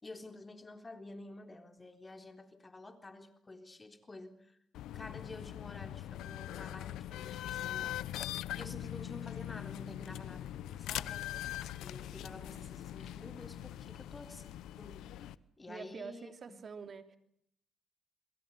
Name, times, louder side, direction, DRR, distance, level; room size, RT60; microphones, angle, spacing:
voice 1, 0.0-4.6 4.9-8.1 8.5-11.4 11.8-14.5 14.8-15.0 15.6-16.3, left 2 dB, 20° left, 3.8 m, -50 dB
sound 1, 4.7-15.3, left 13 dB, 85° left, 0.9 m, -42 dB
voice 2, 15.7-17.2, right 5 dB, 45° right, 3.0 m, -46 dB
28.5 x 22.5 x 5.6 m
cardioid pair, 90°, 0 cm